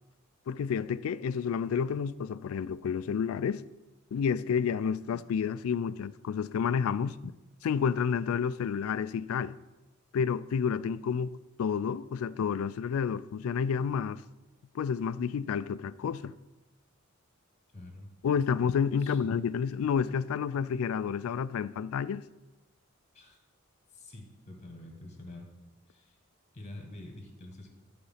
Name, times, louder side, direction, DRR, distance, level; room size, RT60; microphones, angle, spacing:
voice 1, 0.5-3.6 4.1-7.2 7.6-9.6 10.1-11.3 11.6-14.2 14.7-16.3 18.2-22.3, left 7 dB, 80° left, 0.3 m, -30 dB
voice 2, 17.7-18.1 19.0-19.3 23.1-23.4 23.9-25.5 25.9-26.2 26.5-27.7, left 1 dB, 35° left, 1.7 m, -47 dB
12.0 x 4.0 x 5.6 m
head